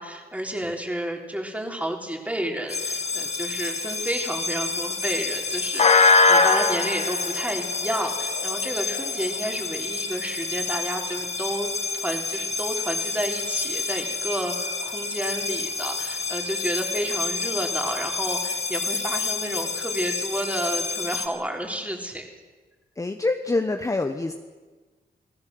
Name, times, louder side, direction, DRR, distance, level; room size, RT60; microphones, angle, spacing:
voice 1, 0.0-22.3, right 1 dB, 10° right, 2 dB, 3.7 m, -31 dB
sound 1, 2.7-21.3, left 4 dB, 40° left, 1.9 m, -26 dB
voice 2, 23.0-24.3, left 2 dB, 20° left, 6 dB, 1.1 m, -25 dB
29.0 x 19.0 x 7.8 m, 1.3 s
wide cardioid pair, 145°, 16 cm